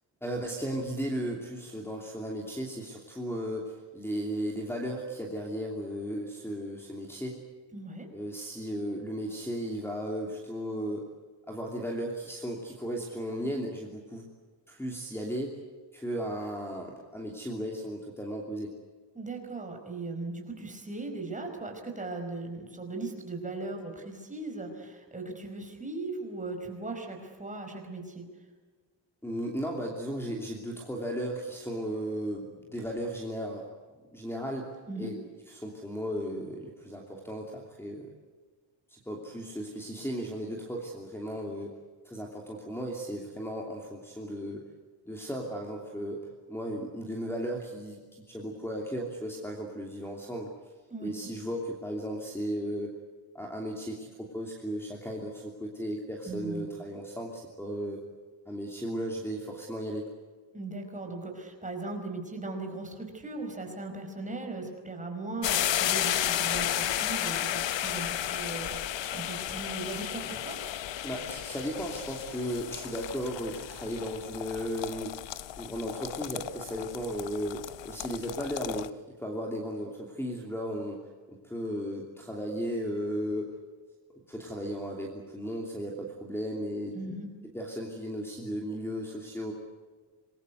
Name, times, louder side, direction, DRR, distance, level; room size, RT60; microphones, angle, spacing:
voice 1, 0.2-7.4 8.1-11.0 11.5-14.3 14.7-15.6 15.9-18.7 29.2-33.6 34.1-34.7 35.0-35.2 35.5-38.1 38.9-41.7 42.0-44.6 45.1-46.2 46.5-48.0 48.3-50.5 51.0-52.9 53.3-58.0 58.5-60.1 71.0-75.1 75.6-83.5 84.3-87.2 87.5-89.5, equal, 5° left, 0 dB, 2.9 m, -35 dB
voice 2, 7.7-8.1 19.1-28.2 34.9-35.1 50.9-51.1 56.2-56.7 60.5-70.6 86.9-87.3, right 3 dB, 15° right, 3 dB, 4.9 m, -38 dB
sound 1, 65.4-78.9, left 12 dB, 75° left, 0.9 m, -33 dB
26.5 x 21.5 x 8.1 m, 1.4 s
wide cardioid pair, 175°, 45 cm